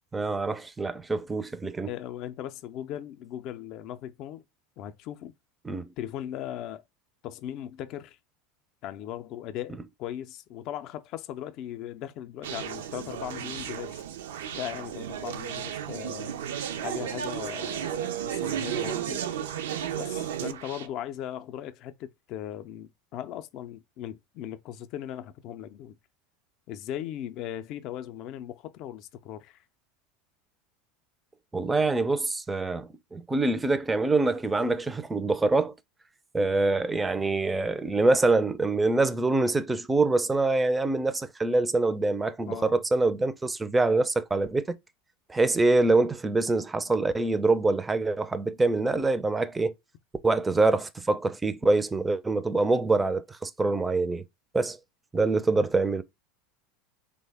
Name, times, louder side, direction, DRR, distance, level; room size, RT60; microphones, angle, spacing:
voice 1, 0.1-1.9 5.6-5.9 31.5-35.7 36.3-44.8 45.3-49.7 50.2-54.2 54.5-54.8 55.1-56.0, right 3 dB, 15° right, 0.4 m, -25 dB
voice 2, 1.9-4.4 4.8-5.3 6.0-6.8 7.2-8.2 8.8-14.0 14.5-16.3 16.8-19.2 19.9-26.0 26.7-29.6 42.5-42.8, left 11 dB, 55° left, 0.4 m, -38 dB
Conversation, 12.4-20.9, right 10 dB, 85° right, 0.4 m, -33 dB
3.3 x 2.1 x 3.3 m
hypercardioid pair, 100°, 0 cm